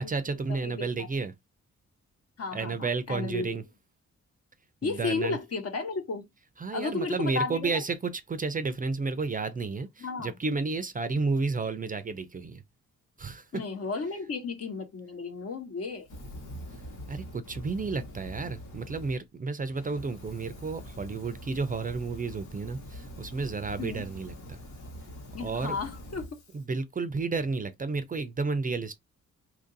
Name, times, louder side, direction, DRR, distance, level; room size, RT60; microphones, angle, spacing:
voice 1, 0.0-1.3 2.5-3.6 4.8-5.4 6.6-12.6 13.2-13.5 17.1-24.6 25.4-25.8 26.5-29.0, right 4 dB, 30° right, 0.5 m, -32 dB
voice 2, 0.6-1.1 2.4-3.5 4.8-6.3 6.7-7.7 10.0-10.3 13.5-16.1 23.8-24.0 25.3-26.4, left 4 dB, 55° left, 1.1 m, -33 dB
Fire, 16.0-19.2 19.6-26.6, equal, 80° left, 1.4 m, -44 dB
2.9 x 2.6 x 3.9 m
cardioid pair, 110°, 30 cm